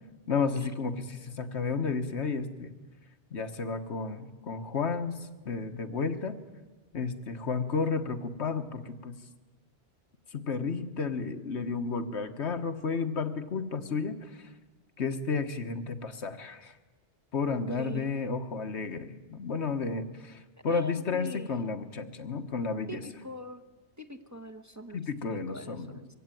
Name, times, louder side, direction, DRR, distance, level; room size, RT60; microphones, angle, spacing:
voice 1, 0.3-2.7 3.3-6.4 6.9-9.2 10.3-14.5 15.0-16.7 17.3-23.0 24.9-26.0, left 4 dB, 75° left, 8 dB, 1.6 m, -32 dB
voice 2, 17.5-18.1 20.7-21.5 22.9-23.6 24.0-26.1, equal, 15° right, 7 dB, 1.0 m, -43 dB
23.5 x 16.0 x 9.2 m, 1.3 s
omnidirectional pair, 1.2 m